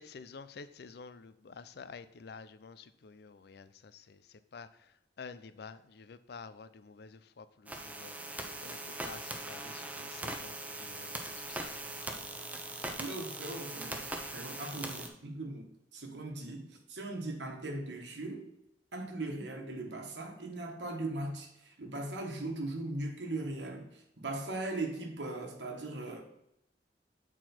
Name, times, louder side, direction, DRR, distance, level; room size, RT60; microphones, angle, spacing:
voice 1, 0.0-12.4 14.9-15.1, left 5 dB, 65° left, 14 dB, 0.5 m, -50 dB
sound 1, 7.7-15.1, right 2 dB, 10° right, 0.8 m, -41 dB
voice 2, 13.0-18.5 18.9-26.2, right 2 dB, 80° right, 2 dB, 1.3 m, -39 dB
7.9 x 4.5 x 4.3 m, 0.79 s
head